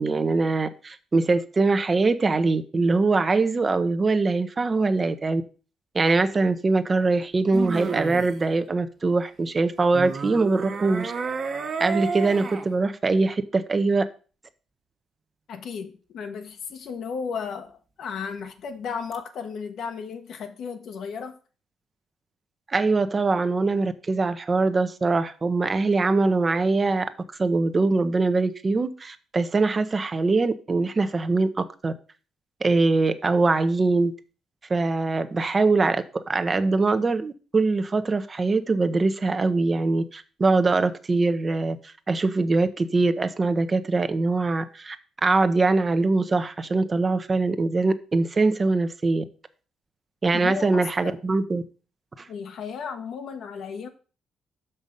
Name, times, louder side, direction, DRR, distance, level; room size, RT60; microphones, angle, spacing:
voice 1, 0.0-5.4 5.9-11.1 11.8-14.0 22.7-27.1 27.4-31.9 32.6-34.1 34.7-41.8 42.1-45.0 45.2-49.2 50.2-51.6, right 3 dB, 30° right, 10 dB, 0.8 m, -22 dB
sound 1, 6.0-6.1 7.5-8.3 9.9-12.7 19.1-19.2, right 5 dB, 50° right, 1.4 m, -31 dB
voice 2, 15.5-21.4 50.4-51.2 52.3-53.9, left 6 dB, 70° left, 6 dB, 1.2 m, -34 dB
6.2 x 5.5 x 5.3 m, 0.36 s
cardioid pair, 90°, 0 cm